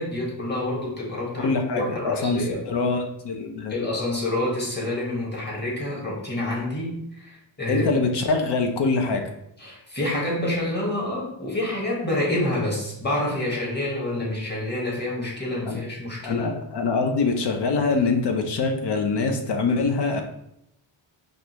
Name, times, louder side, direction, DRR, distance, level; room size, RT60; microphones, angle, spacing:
voice 1, 0.0-2.6 3.7-7.9 9.6-16.5, left 1 dB, 20° left, -4 dB, 1.6 m, -28 dB
voice 2, 1.4-3.7 7.7-9.2 14.2-14.3 15.7-15.8 16.2-20.2, left 4 dB, 55° left, 4 dB, 0.8 m, -24 dB
5.2 x 2.6 x 3.0 m, 0.78 s
cardioid pair, 105°, 48 cm